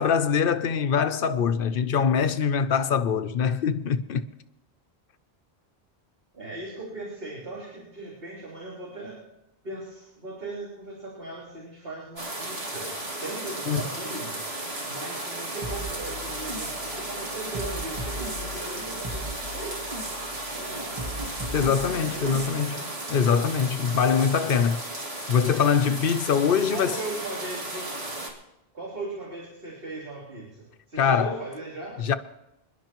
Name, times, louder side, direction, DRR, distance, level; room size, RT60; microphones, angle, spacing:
voice 1, 0.0-4.3 13.7-13.8 21.5-22.8 23.1-24.9 25.3-27.0 31.0-31.4 32.0-32.1, left 6 dB, 65° left, 0.9 m, -23 dB
voice 2, 6.3-9.2 9.6-12.9 13.2-14.4 14.9-19.9 20.5-21.0 21.8-22.9 26.7-27.9 28.7-32.0, right 2 dB, 65° right, 3.7 m, -38 dB
sound 1, 12.2-28.3, right 1 dB, 85° right, 2.6 m, -35 dB
sound 2, 15.6-22.5, right 1 dB, 35° right, 1.1 m, -37 dB
26.0 x 11.5 x 3.0 m
omnidirectional pair, 1.0 m